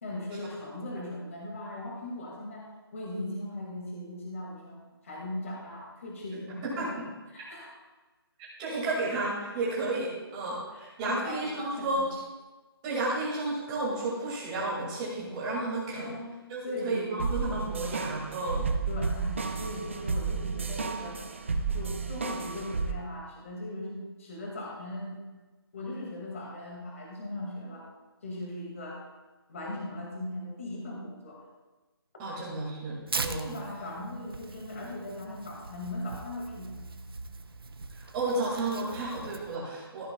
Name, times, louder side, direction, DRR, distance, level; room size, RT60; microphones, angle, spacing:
voice 1, 0.0-4.8 5.0-6.9 7.3-7.7 10.7-12.1 16.0-16.4 16.6-17.3 18.9-21.2 21.5-25.2 25.7-27.9 28.2-29.0 29.5-31.4 33.4-37.0, left 1 dB, 35° left, -2 dB, 2.1 m, -39 dB
voice 2, 6.6-7.1 8.6-12.2 12.8-16.2 16.5-18.7 32.2-33.6 38.0-40.1, right 2 dB, 10° right, -6 dB, 2.1 m, -32 dB
sound 1, 17.2-22.9, right 4 dB, 30° right, 0.5 m, -32 dB
Tearing, 33.1-39.6, right 4 dB, 65° right, 0.8 m, -40 dB
14.0 x 9.7 x 2.3 m, 1.2 s
hypercardioid pair, 175°, 13 cm